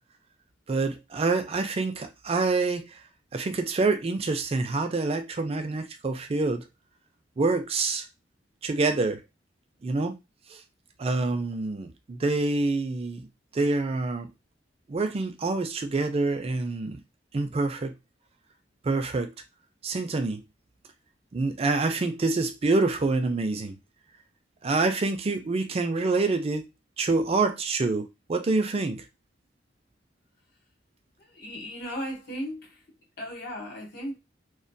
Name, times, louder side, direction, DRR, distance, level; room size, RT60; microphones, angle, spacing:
voice 1, 0.7-2.8 3.3-6.6 7.4-8.1 8.6-9.2 9.8-10.2 10.5-10.6 11.0-13.3 13.5-14.3 14.9-17.0 17.3-17.9 18.8-19.3 19.8-20.4 21.3-23.8 24.6-26.6 27.0-29.0, right 3 dB, 35° right, 0.4 m, -26 dB
voice 2, 31.2-32.8 33.2-34.2, equal, 65° left, 1.0 m, -36 dB
2.2 x 2.2 x 2.6 m
head